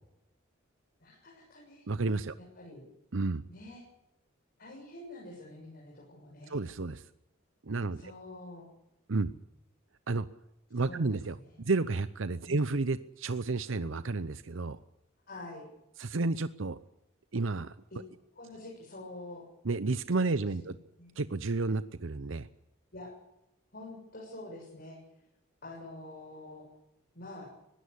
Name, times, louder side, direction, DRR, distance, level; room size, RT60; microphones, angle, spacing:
voice 1, 1.0-1.9 2.4-2.8 3.5-3.8 4.6-6.5 8.0-8.7 10.7-11.1 11.4-11.7 12.4-12.6 15.3-15.7 18.3-19.5 20.6-21.2 22.9-23.2 23.7-25.0 25.6-26.7 27.1-27.5, left 2 dB, 50° left, -3 dB, 6.9 m, -47 dB
voice 2, 1.9-2.3 3.1-3.4 6.5-7.1 7.6-8.0 9.1-9.3 10.1-10.3 10.7-14.8 16.0-16.8 17.3-17.7 19.6-20.8 21.2-22.5, right 3 dB, 70° right, 13 dB, 0.8 m, -31 dB
20.5 x 16.5 x 8.2 m, 0.87 s
head